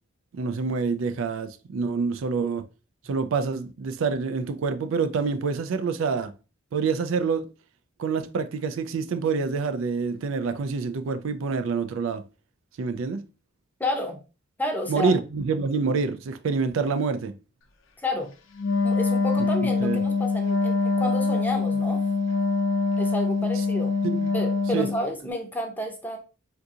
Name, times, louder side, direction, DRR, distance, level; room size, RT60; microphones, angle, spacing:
voice 1, 0.3-2.7 3.1-6.3 6.7-7.4 8.0-12.2 12.8-13.2 14.9-17.4 19.8-20.0 23.6-23.7 24.0-24.3 24.7-24.9, right 5 dB, 90° right, 0.4 m, -27 dB
voice 2, 13.8-14.2 14.6-15.1 18.0-18.3 18.8-22.0 23.0-23.9 24.3-26.2, left 1 dB, 10° left, 0.6 m, -30 dB
Wind instrument woodwind instrument, 18.6-25.1, left 4 dB, 80° left, 0.5 m, -24 dB
3.8 x 2.7 x 2.4 m
head